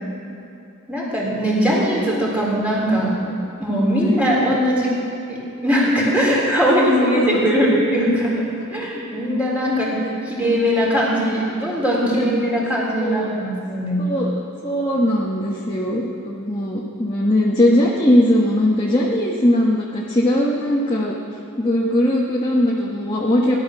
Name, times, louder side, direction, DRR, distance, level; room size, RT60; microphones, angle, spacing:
voice 1, 0.9-4.9 5.3-8.3 8.7-9.9 10.2-14.0, equal, 5° right, -5 dB, 3.7 m, -20 dB
voice 2, 6.8-7.4 9.9-10.1 12.1-12.3 13.0-13.3 14.0-14.3 14.6-21.1 21.6-23.6, left 1 dB, 20° left, -4 dB, 1.3 m, -20 dB
17.5 x 11.0 x 6.4 m, 2.7 s
head